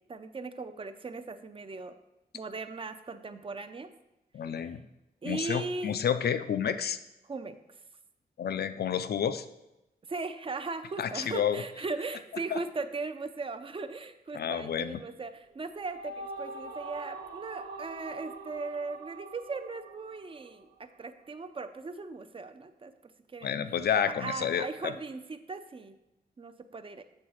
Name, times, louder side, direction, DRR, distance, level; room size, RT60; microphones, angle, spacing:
voice 1, 0.1-2.0 2.3-3.9 5.2-6.0 7.2-7.6 10.1-20.7 21.0-23.6 24.0-26.0 26.4-27.0, right 3 dB, 35° right, 10 dB, 0.5 m, -38 dB
voice 2, 4.3-4.8 5.2-7.0 8.4-9.4 11.0-11.6 12.5-12.6 14.3-15.0 23.4-24.9, left 8 dB, 75° left, 11 dB, 0.4 m, -30 dB
sound 1, 15.5-21.0, right 2 dB, 90° right, 0.9 m, -44 dB
7.5 x 4.0 x 6.3 m, 0.95 s
wide cardioid pair, 145°, 17 cm